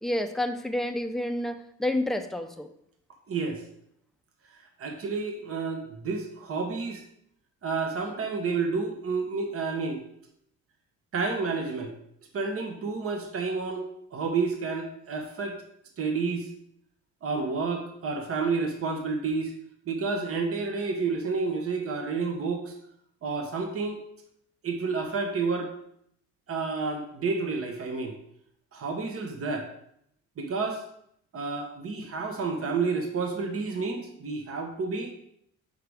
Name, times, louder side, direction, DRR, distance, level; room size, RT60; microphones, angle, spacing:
voice 1, 0.0-2.7, left 1 dB, ahead, 6 dB, 0.5 m, -29 dB
voice 2, 3.3-3.6 4.8-7.0 7.6-10.0 11.1-11.9 12.3-13.8 14.1-15.6 16.0-16.5 17.2-19.5 19.9-22.7 23.2-24.0 24.6-25.7 26.5-28.2 28.7-29.7 30.4-30.8 31.3-35.1, right 4 dB, 50° right, 4 dB, 1.0 m, -30 dB
5.7 x 4.9 x 3.4 m, 0.71 s
cardioid pair, 90°, 30 cm